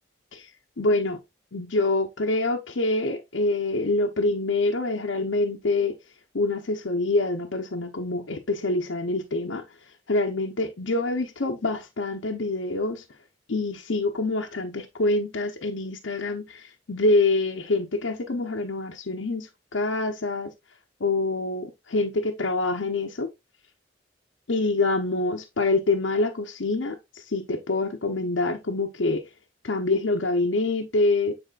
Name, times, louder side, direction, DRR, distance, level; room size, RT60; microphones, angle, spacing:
voice 1, 0.8-1.2 1.5-6.0 6.3-9.6 10.1-13.0 13.5-20.5 21.0-23.3 24.5-29.2 29.6-31.3, left 2 dB, 90° left, 0.8 m, -26 dB
9.0 x 4.3 x 2.4 m
head